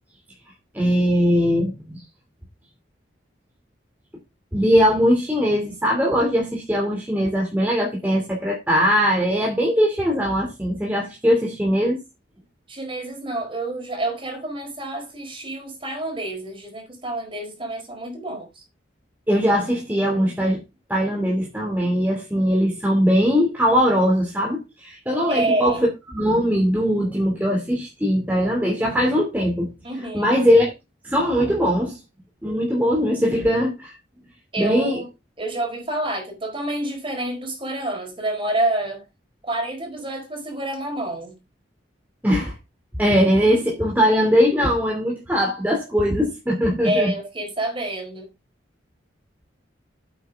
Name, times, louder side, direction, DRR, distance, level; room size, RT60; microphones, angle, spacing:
voice 1, 0.7-2.0 4.5-12.0 19.3-20.6 20.9-29.7 30.1-30.7 31.0-32.0 32.4-33.9 34.6-35.0 42.2-42.5 43.0-47.1, equal, 10° right, 2.7 m, -20 dB
voice 2, 12.7-18.6 25.3-25.8 29.8-30.3 34.5-35.1 35.4-39.0 39.4-41.4 46.8-48.3, right 1 dB, 30° right, 4.6 m, -28 dB
10.0 x 8.5 x 3.6 m
head